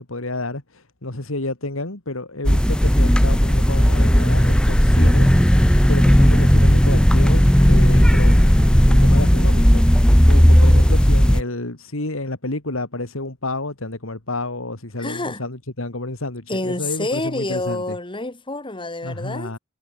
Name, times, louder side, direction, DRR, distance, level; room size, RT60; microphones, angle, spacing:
voice 1, 0.0-18.0 19.0-19.6, left 2 dB, 70° left, 2.6 m, -30 dB
sound 1, 2.4-11.4, equal, 5° left, 0.9 m, -14 dB
voice 2, 15.0-15.4 16.5-19.5, left 2 dB, 25° left, 3.1 m, -28 dB
head